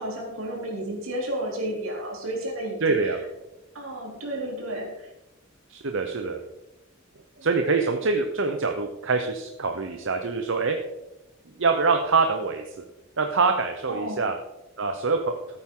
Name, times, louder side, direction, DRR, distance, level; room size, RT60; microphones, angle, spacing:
voice 1, 0.0-3.0 3.7-5.1 7.4-7.5 7.8-8.0 13.9-14.2, right 1 dB, 85° right, -1 dB, 3.5 m, -32 dB
voice 2, 2.8-3.2 5.7-6.4 7.4-10.8 11.6-12.8 13.2-14.3 14.8-15.3, right 4 dB, 65° right, 4 dB, 0.9 m, -24 dB
14.0 x 8.8 x 3.8 m, 0.96 s
head